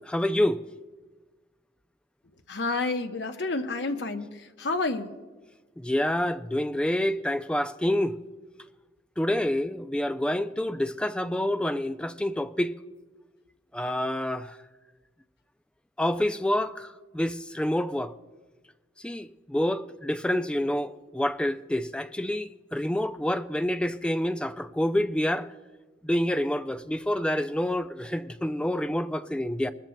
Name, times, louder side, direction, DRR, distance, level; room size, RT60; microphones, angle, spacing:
voice 1, 0.1-0.6 5.8-8.2 9.2-12.7 13.7-14.5 16.0-18.1 19.0-25.5 26.0-29.7, left 1 dB, 5° left, 0.3 m, -27 dB
voice 2, 2.5-4.3 4.6-5.1, left 3 dB, 75° left, 0.9 m, -29 dB
21.5 x 13.5 x 2.2 m
head